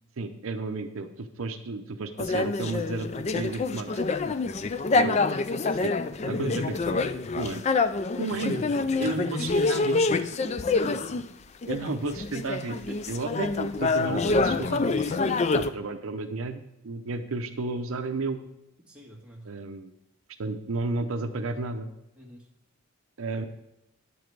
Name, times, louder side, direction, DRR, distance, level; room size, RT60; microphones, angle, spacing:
voice 1, 0.2-4.1 4.9-5.2 5.7-6.0 6.3-7.0 7.4-7.6 8.2-8.6 9.0-10.0 11.7-12.7 13.1-18.4 19.4-19.9 20.4-21.9 23.2-23.4, right 3 dB, 70° right, 7 dB, 0.6 m, -33 dB
sound 1, 2.2-11.3 11.6-15.7, left 3 dB, 30° left, 0.3 m, -26 dB
voice 2, 9.0-9.7 10.3-11.3 11.6-11.7 12.1-12.2 12.7-13.2 18.9-19.5 22.1-22.5, equal, 5° right, -3 dB, 1.7 m, -44 dB
10.0 x 7.1 x 4.6 m, 0.86 s
head